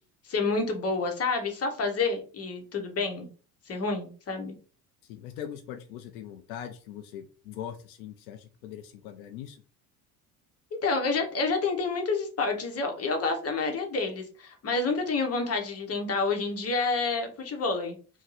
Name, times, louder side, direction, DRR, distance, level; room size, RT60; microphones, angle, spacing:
voice 1, 0.2-3.3 3.7-4.5 10.8-18.0, left 3 dB, 35° left, 4 dB, 1.1 m, -29 dB
voice 2, 5.1-9.6, left 9 dB, 70° left, 7 dB, 0.6 m, -41 dB
2.7 x 2.3 x 3.8 m, 0.38 s
hypercardioid pair, 65°, 44 cm